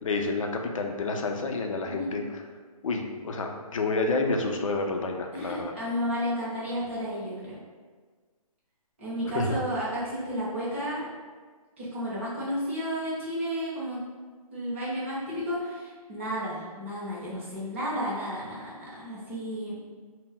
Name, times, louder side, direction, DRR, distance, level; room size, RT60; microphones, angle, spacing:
voice 1, 0.0-2.2 2.8-5.7 9.2-9.6, left 3 dB, 60° left, 3 dB, 0.4 m, -29 dB
voice 2, 5.3-7.6 9.0-11.1 11.8-14.0 14.5-19.8, equal, 20° right, -8 dB, 0.5 m, -32 dB
2.2 x 2.0 x 3.8 m, 1.5 s
hypercardioid pair, 175°, 19 cm